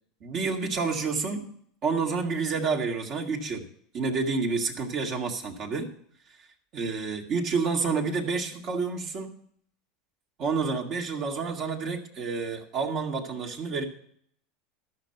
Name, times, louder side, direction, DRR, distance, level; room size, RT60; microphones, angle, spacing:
voice 1, 0.2-1.5 1.8-3.7 3.9-5.9 6.7-9.3 10.4-13.8, right 4 dB, 45° right, 2 dB, 2.2 m, -29 dB
13.0 x 6.0 x 6.7 m, 0.63 s
supercardioid pair, 120°, 0 cm